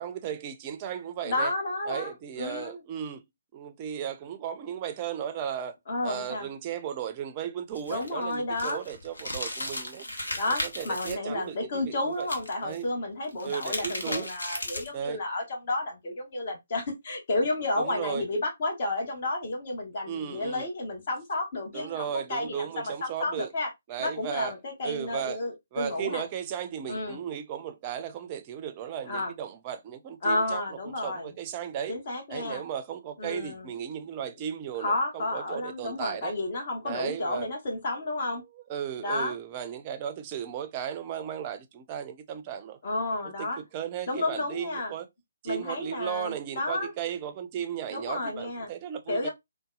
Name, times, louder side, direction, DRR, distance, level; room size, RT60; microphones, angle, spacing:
voice 1, 0.0-1.5 1.9-3.2 3.5-5.8 6.0-10.0 10.5-12.3 12.6-12.9 13.4-14.3 14.9-15.2 17.8-18.3 20.1-20.7 21.7-23.5 23.9-24.5 24.8-25.4 25.7-31.9 32.3-36.3 36.8-37.5 38.7-42.8 43.4-45.1 45.4-49.3, right 9 dB, 30° right, 0.4 m, -35 dB
voice 2, 1.2-2.8 5.9-6.5 7.9-8.8 10.3-23.7 24.0-26.2 26.9-27.2 29.1-29.3 30.2-31.3 31.9-32.6 33.2-33.7 34.8-38.4 39.0-39.3 42.8-43.6 44.1-44.9 45.4-46.9 47.9-48.7 49.1-49.3, left 2 dB, 45° left, 1.1 m, -31 dB
sound 1, 7.7-11.1 12.2-12.8 13.3-15.0, left 1 dB, 75° left, 0.9 m, -35 dB
3.9 x 2.2 x 2.3 m
figure-of-eight pair, 140°, 0 cm